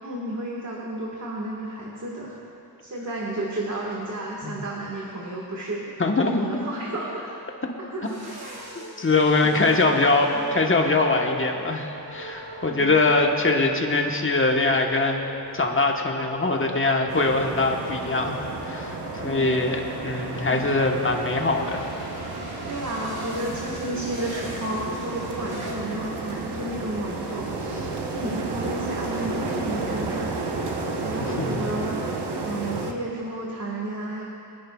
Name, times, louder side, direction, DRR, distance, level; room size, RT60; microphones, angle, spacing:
voice 1, 0.0-2.5 2.8-5.9 6.2-7.4 7.8-8.3 9.4-9.5 12.7-13.0 19.1-19.6 20.5-20.7 22.6-30.5 31.0-32.1 32.4-34.3, right 1 dB, 45° right, -3 dB, 1.7 m, -32 dB
voice 2, 6.0-6.6 9.0-15.2 15.5-19.0 19.2-21.9 31.4-31.7, left 3 dB, 30° left, 1 dB, 1.2 m, -22 dB
sound 1, 8.0-25.7, right 1 dB, 65° right, 3.0 m, -39 dB
sound 2, 17.1-32.9, right 3 dB, 90° right, 1.0 m, -32 dB
23.5 x 10.5 x 2.4 m, 2.7 s
wide cardioid pair, 80°, 39 cm